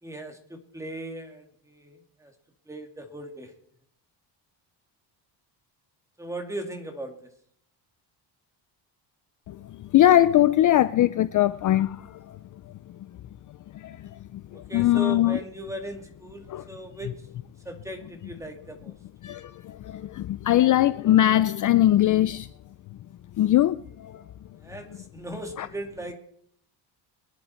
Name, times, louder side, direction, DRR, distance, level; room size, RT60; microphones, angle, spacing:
voice 1, 0.0-2.3 2.7-3.5 6.2-7.3 14.5-17.3 17.6-18.9 24.6-26.2, right 1 dB, 5° right, 2.4 m, -38 dB
voice 2, 9.5-12.4 12.7-13.0 13.7-15.4 16.5-16.6 19.2-22.5 23.4-24.2 25.6-25.7, left 13 dB, 45° left, 0.5 m, -22 dB
23.0 x 10.5 x 4.4 m
cardioid pair, 130°, 44 cm